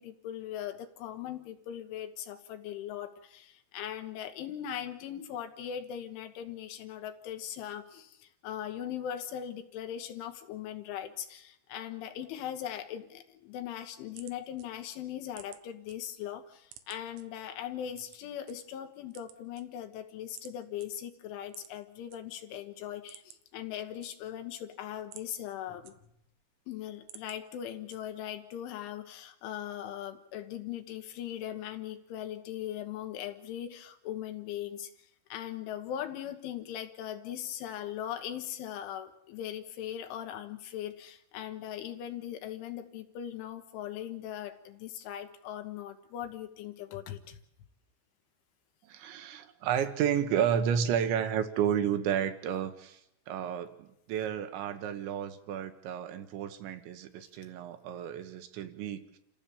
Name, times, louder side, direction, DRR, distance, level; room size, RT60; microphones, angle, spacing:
voice 1, 0.0-25.9 26.7-34.9 35.3-47.4, left 10 dB, 75° left, 7 dB, 3.7 m, -40 dB
sound 1, 13.8-16.0 16.3-17.2 17.9-18.5 19.0-20.0 20.3-20.5 20.8-20.9 21.5-22.2 22.5-22.6 22.9-23.5 23.8-24.5 24.9-26.4 26.8-27.4 27.9-28.3, right 12 dB, 90° right, 3.9 m, -52 dB
voice 2, 48.8-53.0 53.3-59.2, right 9 dB, 70° right, 8 dB, 3.4 m, -31 dB
29.0 x 15.0 x 7.1 m, 0.81 s
omnidirectional pair, 5.9 m